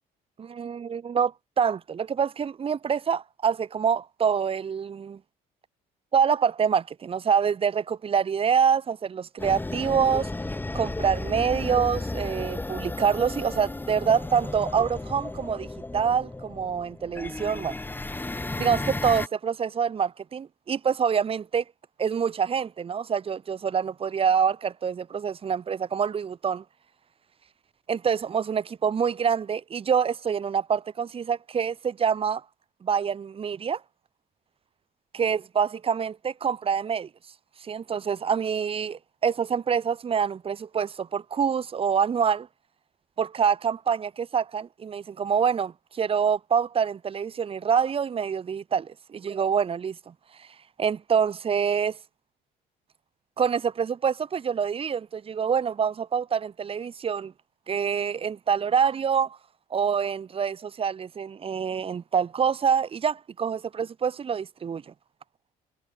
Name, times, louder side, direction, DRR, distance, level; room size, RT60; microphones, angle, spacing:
voice 1, 0.6-5.2 6.1-10.3 10.7-15.7 15.9-17.7 18.6-21.6 22.0-26.6 27.9-32.4 32.8-33.8 35.1-37.1 37.6-42.5 43.2-50.1 50.4-50.5 50.8-52.0 53.4-57.3 57.7-59.4 59.7-64.9, right 7 dB, 35° right, 1.0 m, -26 dB
sound 1, 9.4-19.3, left 2 dB, 10° left, 1.6 m, -34 dB
cardioid pair, 110°, 17 cm